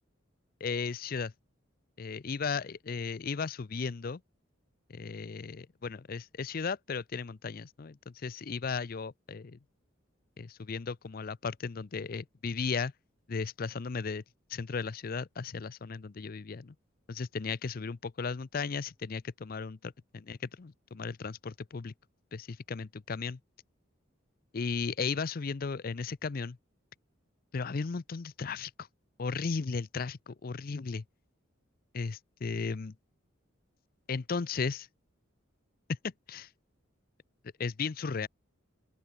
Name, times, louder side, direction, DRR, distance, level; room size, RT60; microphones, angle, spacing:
voice 1, 0.6-1.3 2.0-4.2 4.9-9.6 10.4-12.9 13.3-14.2 14.5-16.7 17.1-21.9 22.3-23.4 24.5-26.6 27.5-28.9 29.2-31.0 31.9-32.9 34.1-34.9 36.0-36.5 37.6-38.3, left 5 dB, 45° left, 0.5 m, -35 dB
open air
head